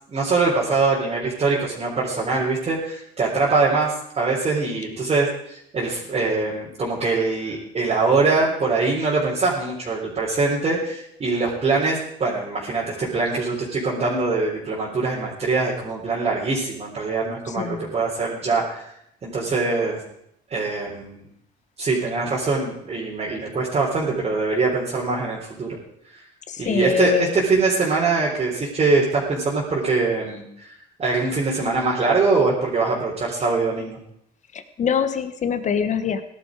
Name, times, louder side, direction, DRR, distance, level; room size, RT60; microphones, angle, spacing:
voice 1, 0.1-18.9 19.2-20.0 20.5-21.2 21.8-25.8 26.6-30.7 31.0-34.0, right 3 dB, 35° right, -6 dB, 4.0 m, -23 dB
voice 2, 17.5-17.9 26.5-27.3 34.5-36.2, left 7 dB, 45° left, 10 dB, 1.5 m, -24 dB
17.0 x 11.5 x 5.0 m, 0.74 s
cardioid pair, 110°, 17 cm